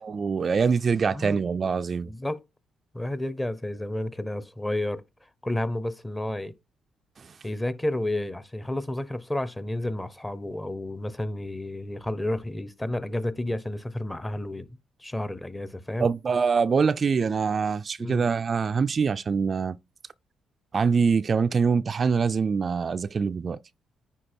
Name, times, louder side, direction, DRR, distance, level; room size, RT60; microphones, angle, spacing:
voice 1, 0.1-2.1 16.0-19.8 20.7-23.6, right 5 dB, 40° right, 0.3 m, -24 dB
voice 2, 2.0-2.4 2.9-5.0 5.4-6.5 7.4-14.7 15.0-16.1 18.0-18.2, left 1 dB, 10° left, 0.8 m, -31 dB
10.0 x 4.2 x 4.4 m
cardioid pair, 90°, 0 cm